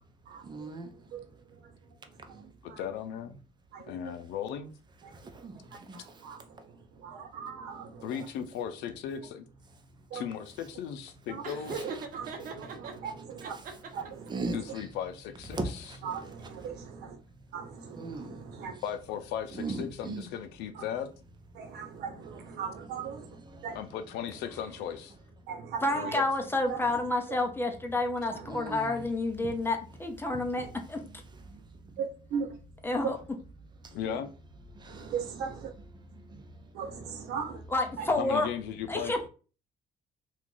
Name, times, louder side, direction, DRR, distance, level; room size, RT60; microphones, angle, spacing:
voice 1, 0.4-1.2 2.1-2.5 5.1-6.4 7.8-8.2 11.6-14.9 15.5-18.8 19.5-20.3 21.7-24.0 28.5-29.1 30.5-30.7 31.0-32.0 33.8-34.0 34.7-37.6, right 2 dB, 25° right, 0.7 m, -43 dB
voice 2, 2.6-3.4 3.9-4.7 8.0-9.4 10.1-11.9 14.5-15.6 18.8-21.1 23.7-25.1 25.9-26.3 33.9-34.3 38.2-39.1, left 9 dB, 85° left, 0.5 m, -36 dB
voice 3, 5.9-6.4 7.0-8.1 10.1-10.2 11.3-11.4 12.1-13.6 13.9-14.3 16.0-17.2 17.5-18.7 20.8-20.9 21.5-23.3 23.6-23.8 25.5-26.1 26.7-26.8 28.3-28.4 30.6-30.7 32.0-32.1 32.3-32.5 34.1-34.2 34.9-35.7 36.7-37.6, right 6 dB, 80° right, 1.0 m, -38 dB
Laughter, 11.4-12.9 13.4-14.3, right 4 dB, 55° right, 0.8 m, -39 dB
voice 4, 25.8-31.0 32.8-33.2 37.7-38.5 38.9-39.3, left 2 dB, 15° left, 0.7 m, -29 dB
2.9 x 2.5 x 3.8 m
cardioid pair, 110°, 17 cm